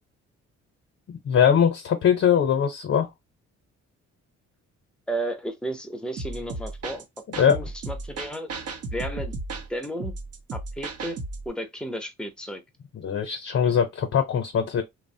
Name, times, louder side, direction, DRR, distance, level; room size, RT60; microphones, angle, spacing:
voice 1, 1.1-3.1 7.4-7.6 13.0-14.8, left 8 dB, 50° left, 0.7 m, -21 dB
voice 2, 5.1-7.0 7.5-8.5 8.9-9.3 9.7-10.1 10.5-11.2 11.5-12.6, right 1 dB, 5° left, 0.6 m, -33 dB
sound 1, 6.2-11.5, right 3 dB, 55° right, 0.7 m, -35 dB
2.9 x 2.1 x 2.6 m
cardioid pair, 90°, 30 cm